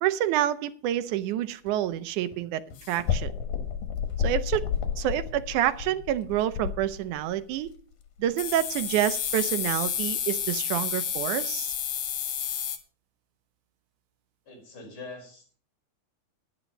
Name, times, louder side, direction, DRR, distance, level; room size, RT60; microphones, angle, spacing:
voice 1, 0.0-2.6 2.9-3.3 4.2-4.7 5.0-7.7 8.2-11.7, right 12 dB, 90° right, 14 dB, 2.2 m, -28 dB
sound 1, 1.7-1.8 2.2-2.3 2.7-7.2 7.7-7.8 8.4-12.8, left 8 dB, 90° left, 3.0 m, -30 dB
voice 2, 14.5-15.6, left 3 dB, 45° left, 0 dB, 5.4 m, -44 dB
11.0 x 9.7 x 5.3 m, 0.42 s
omnidirectional pair, 3.4 m